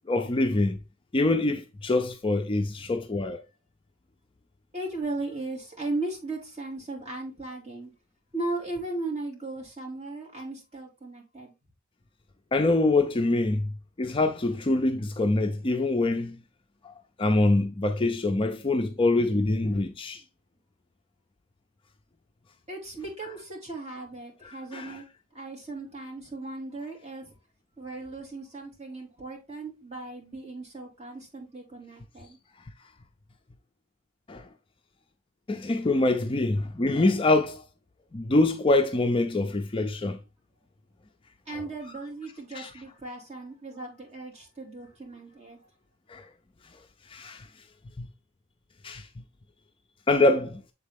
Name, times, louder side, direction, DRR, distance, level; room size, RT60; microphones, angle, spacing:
voice 1, 0.1-0.8 1.1-3.4 12.5-13.7 14.0-16.4 17.2-20.2 24.4-25.0 34.3-34.4 35.5-37.6 38.1-40.2 42.5-42.7 46.1-46.2 47.1-47.4 48.0-48.1 48.8-49.1 50.1-50.6, left 2 dB, 25° left, 0.4 m, -25 dB
voice 2, 4.7-7.9 8.3-11.5 22.7-25.0 25.3-27.3 27.8-32.4 41.5-45.6, right 2 dB, 30° right, 2.5 m, -37 dB
7.3 x 4.1 x 3.4 m
head